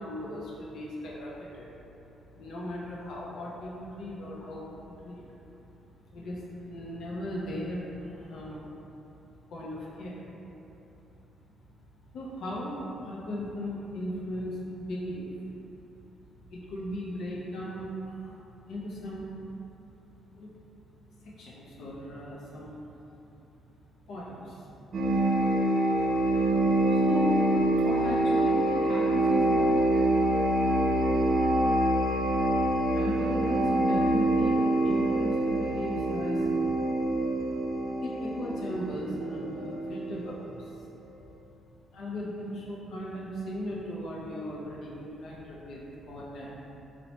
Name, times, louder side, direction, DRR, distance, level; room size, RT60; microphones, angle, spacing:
voice 1, 0.0-1.7 2.3-5.4 6.0-8.7 9.5-10.3 11.5-11.6 11.8-15.5 16.5-19.4 20.3-20.5 21.1-22.9 23.2-23.3 24.1-24.7 25.5-25.6 26.3-29.8 30.9-31.0 32.0-36.8 38.0-40.9 41.9-46.6, equal, 70° left, -5 dB, 0.4 m, -38 dB
sound 1, 24.9-40.4, right 1 dB, 55° right, 0.4 m, -25 dB
2.9 x 2.0 x 2.7 m, 2.9 s
cardioid pair, 90°, 0 cm